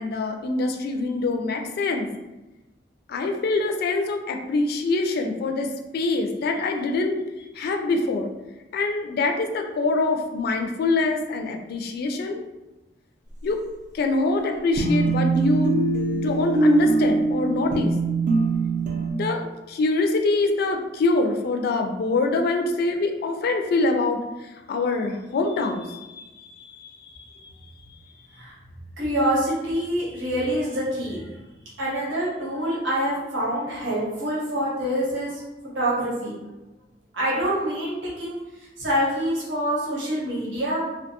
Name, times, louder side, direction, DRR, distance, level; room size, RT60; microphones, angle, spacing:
voice 1, 0.0-2.1 3.1-7.2 7.6-8.3 8.7-12.4 13.4-13.6 13.9-15.8 16.1-17.9 19.2-19.4 19.7-24.2 24.7-27.5, left 3 dB, 55° left, 4 dB, 0.3 m, -24 dB
sound 1, 14.8-19.1, right 3 dB, 45° right, 0.4 m, -22 dB
voice 2, 29.0-31.4 31.8-35.4 35.7-36.4 37.1-40.9, equal, 85° right, -6 dB, 0.8 m, -26 dB
2.6 x 2.2 x 2.8 m, 1.0 s
head